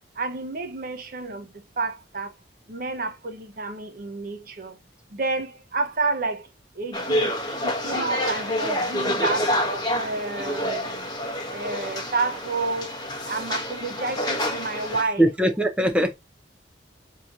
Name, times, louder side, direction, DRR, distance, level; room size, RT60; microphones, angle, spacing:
voice 1, 0.2-1.5 1.8-2.3 2.7-4.7 5.1-6.5 6.8-7.3 7.6-9.5 9.9-11.1 11.5-12.9 13.2-15.2, right 3 dB, 50° right, 0.9 m, -30 dB
sound 1, 6.9-15.0, equal, 20° left, 0.9 m, -28 dB
voice 2, 15.2-16.1, right 1 dB, 5° right, 0.6 m, -21 dB
6.0 x 2.8 x 2.6 m
head